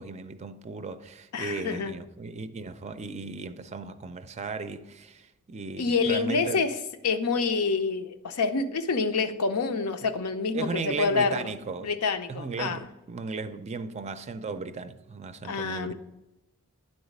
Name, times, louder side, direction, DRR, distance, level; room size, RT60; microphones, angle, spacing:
voice 1, 0.0-6.6 8.9-9.0 10.0-10.1 10.5-11.9 12.3-15.9, right 4 dB, 30° right, 0.4 m, -36 dB
voice 2, 1.3-1.9 5.8-6.7 7.0-11.4 11.8-12.8 15.5-15.9, left 4 dB, 85° left, 0.6 m, -27 dB
9.8 x 4.0 x 5.1 m
head